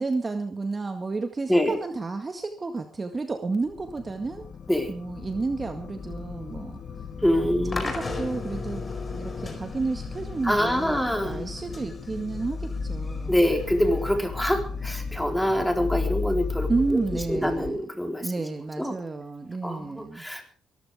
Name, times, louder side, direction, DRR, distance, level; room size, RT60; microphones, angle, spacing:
voice 1, 0.0-4.4 4.9-6.8 7.4-8.8 9.1-13.3 16.7-17.8 18.2-20.2, right 3 dB, 30° right, 6 dB, 1.9 m, -31 dB
sound 1, 3.7-17.7, left 4 dB, 45° left, 2.5 m, -35 dB
voice 2, 7.2-7.9 10.4-11.5 13.3-18.3 18.8-19.0 19.6-20.5, equal, 5° left, 4 dB, 4.0 m, -25 dB
sound 2, 7.7-14.8, left 3 dB, 25° left, 5.0 m, -38 dB
23.0 x 14.5 x 3.6 m, 0.39 s
cardioid pair, 90°, 0 cm